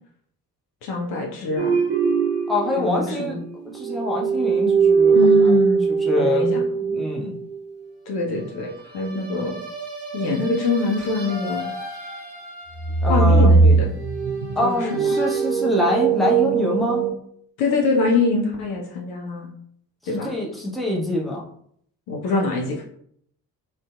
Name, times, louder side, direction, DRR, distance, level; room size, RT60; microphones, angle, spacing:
voice 1, 0.8-1.8 2.8-3.4 5.1-5.9 6.2-6.6 8.1-9.6 10.1-11.7 13.1-13.9 14.6-15.2 17.6-19.5 20.1-20.3 22.1-22.8, left 3 dB, 50° left, 1 dB, 0.6 m, -24 dB
sound 1, 1.6-3.5 3.8-7.6 9.2-12.5 12.8-17.1, right 5 dB, 85° right, 0.7 m, -21 dB
voice 2, 2.5-3.4 3.7-5.5 5.9-6.5 6.8-7.4 13.0-13.5 14.6-17.0 20.1-21.4, left 2 dB, ahead, -3 dB, 0.4 m, -25 dB
2.5 x 2.2 x 2.3 m, 0.66 s
figure-of-eight pair, 40°, 48 cm